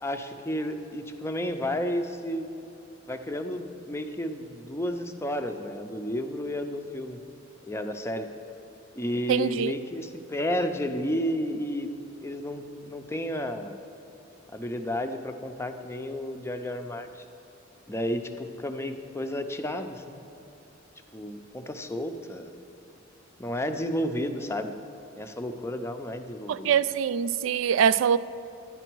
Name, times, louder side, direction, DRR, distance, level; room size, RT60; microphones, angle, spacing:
voice 1, 0.0-2.5 3.1-7.2 7.7-8.3 9.0-11.9 12.2-13.8 14.5-17.2 17.9-20.2 21.1-22.6 23.4-24.8 25.2-26.7, left 1 dB, 15° left, 6 dB, 0.5 m, -32 dB
voice 2, 9.3-9.7 26.5-28.2, right 8 dB, 75° right, 17 dB, 0.3 m, -23 dB
11.0 x 9.9 x 4.6 m, 2.8 s
head